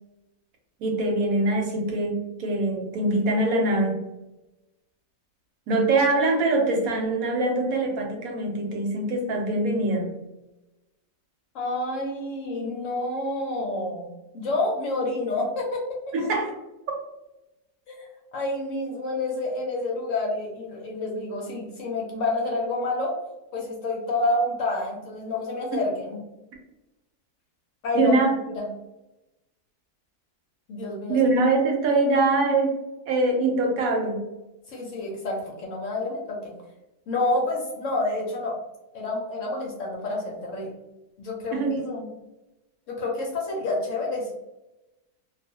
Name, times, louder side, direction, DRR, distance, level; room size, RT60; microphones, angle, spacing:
voice 1, 0.8-4.0 5.7-10.1 16.1-16.5 27.9-28.3 31.1-32.7 33.1-34.2 41.5-41.9, right 2 dB, 75° right, 1 dB, 1.0 m, -23 dB
voice 2, 11.5-14.1 14.3-15.8 17.9-23.1 23.5-26.2 27.8-28.2 28.5-28.7 30.7-31.2 34.7-36.5 37.1-38.6 38.9-40.7 41.2-41.6 41.9-42.1 42.9-44.3, left 2 dB, 65° left, -2 dB, 0.8 m, -28 dB
2.4 x 2.3 x 2.7 m, 0.99 s
omnidirectional pair, 1.6 m